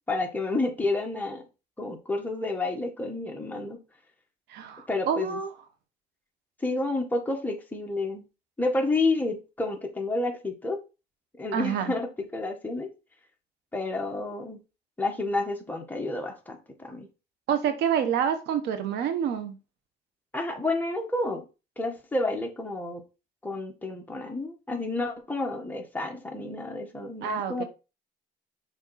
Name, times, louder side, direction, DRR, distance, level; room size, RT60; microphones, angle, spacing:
voice 1, 0.1-1.4 1.8-3.8 4.9-5.4 6.6-8.2 8.6-10.8 11.4-12.9 13.7-14.6 15.0-17.1 20.3-21.4 21.8-23.0 23.4-27.6, left 2 dB, 10° left, 1.6 m, -30 dB
voice 2, 4.5-5.5 11.5-11.9 17.5-19.6 27.2-27.6, right 8 dB, 80° right, 1.3 m, -27 dB
6.4 x 4.4 x 4.2 m
cardioid pair, 110°, 17 cm